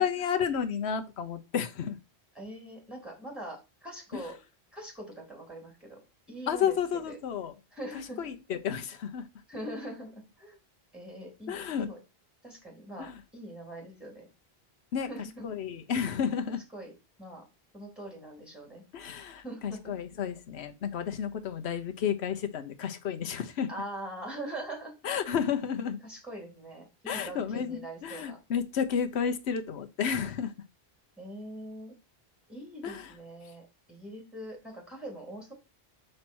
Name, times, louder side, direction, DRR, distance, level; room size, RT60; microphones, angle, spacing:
voice 1, 0.0-2.0 4.1-4.2 6.5-7.5 8.2-9.3 11.5-11.9 13.0-13.1 14.9-15.1 15.4-16.6 18.9-23.7 25.0-26.0 27.1-30.5 32.8-33.0, left 7 dB, 90° left, 1.1 m, -31 dB
voice 2, 2.3-4.4 4.7-6.0 6.3-6.8 7.1-7.2 7.7-8.2 9.5-10.6 10.9-12.0 12.4-14.3 15.0-15.5 16.7-16.9 17.2-17.4 17.7-18.8 19.4-19.9 23.7-25.0 26.0-28.4 31.2-32.0 32.5-35.5, right 1 dB, ahead, 2.9 m, -42 dB
5.4 x 4.4 x 6.1 m
omnidirectional pair, 1.1 m